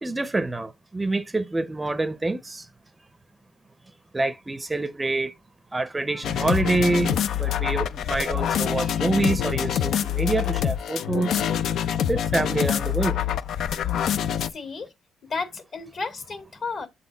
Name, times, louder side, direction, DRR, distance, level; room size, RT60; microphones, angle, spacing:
voice 1, 0.0-2.6 4.1-5.3 5.7-11.5 12.1-13.2, right 2 dB, 20° right, 0.6 m, -26 dB
sound 1, 6.2-14.5, left 10 dB, 75° left, 0.4 m, -25 dB
voice 2, 14.4-14.9 15.2-16.9, left 4 dB, 55° left, 2.1 m, -33 dB
7.7 x 4.2 x 3.9 m
cardioid pair, 90°, 0 cm